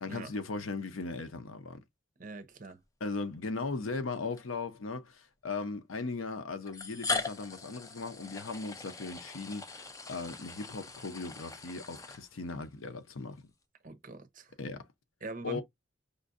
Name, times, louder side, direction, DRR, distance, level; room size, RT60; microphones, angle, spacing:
voice 1, 0.0-1.8 3.0-13.4 14.6-14.8 15.4-15.6, left 3 dB, 90° left, 0.7 m, -38 dB
voice 2, 2.2-2.8 13.8-14.5 15.2-15.6, right 3 dB, 40° right, 0.7 m, -43 dB
sound 1, 3.3-3.4 4.4-4.5 5.6-5.7 6.7-12.7, left 4 dB, 15° left, 0.4 m, -40 dB
5.1 x 2.5 x 2.5 m
head